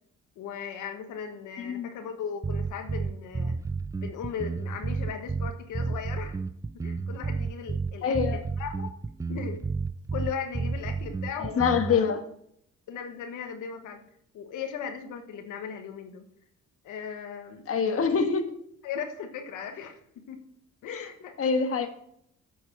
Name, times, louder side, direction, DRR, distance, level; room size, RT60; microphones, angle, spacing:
voice 1, 0.4-3.6 4.0-6.4 6.8-8.9 9.3-9.6 10.1-12.1 12.9-14.0 14.3-16.2 16.8-17.6 18.8-20.4 20.8-21.3, left 7 dB, 85° left, 5 dB, 1.4 m, -37 dB
voice 2, 1.6-1.9 8.0-8.4 11.4-12.2 17.7-18.5 20.9-21.1 21.4-21.9, left 6 dB, 50° left, 6 dB, 1.5 m, -25 dB
sound 1, 2.4-12.0, right 4 dB, 10° right, 0.3 m, -31 dB
8.4 x 7.1 x 7.3 m, 0.71 s
cardioid pair, 90°, 30 cm